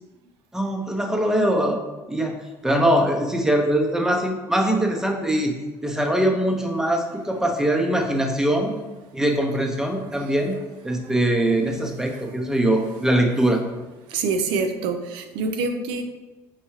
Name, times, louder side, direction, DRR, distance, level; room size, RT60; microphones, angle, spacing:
voice 1, 0.5-1.8 2.1-2.4 2.6-5.5 5.8-8.7 9.1-10.6 10.8-13.6, right 1 dB, 5° right, 2 dB, 0.7 m, -22 dB
voice 2, 10.0-10.7 11.1-11.8 12.1-12.4 14.1-16.0, right 4 dB, 75° right, 6 dB, 0.5 m, -28 dB
5.6 x 2.3 x 3.1 m, 1.1 s
supercardioid pair, 95°, 8 cm